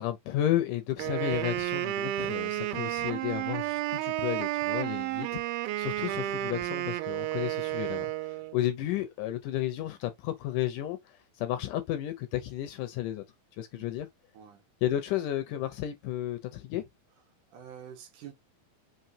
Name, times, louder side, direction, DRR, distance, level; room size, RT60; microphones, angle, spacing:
voice 1, 0.0-13.2 13.6-14.1 14.8-16.8, left 13 dB, 80° left, 1.9 m, -33 dB
Wind instrument woodwind instrument, 1.0-8.6, right 15 dB, 90° right, 2.4 m, -32 dB
voice 2, 17.5-18.3, right 9 dB, 75° right, 2.2 m, -47 dB
5.8 x 2.9 x 2.7 m
omnidirectional pair, 4.1 m